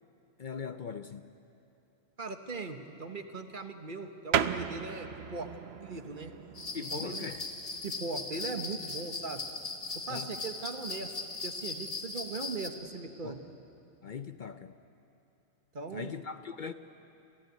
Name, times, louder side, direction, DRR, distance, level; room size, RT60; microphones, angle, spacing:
voice 1, 0.4-1.3 6.7-7.4 10.1-10.3 13.2-13.4 14.0-14.8 15.9-16.7, left 6 dB, 55° left, 0.7 m, -40 dB
voice 2, 2.2-5.5 5.8-6.3 6.9-7.3 7.8-9.4 9.9-11.1 11.4-13.4 15.7-16.1, right 3 dB, 50° right, 1.4 m, -39 dB
sound 1, 4.3-14.5, right 8 dB, 70° right, 1.0 m, -39 dB
sound 2, 6.6-12.7, left 3 dB, 80° left, 2.3 m, -39 dB
26.5 x 15.0 x 9.4 m
omnidirectional pair, 1.1 m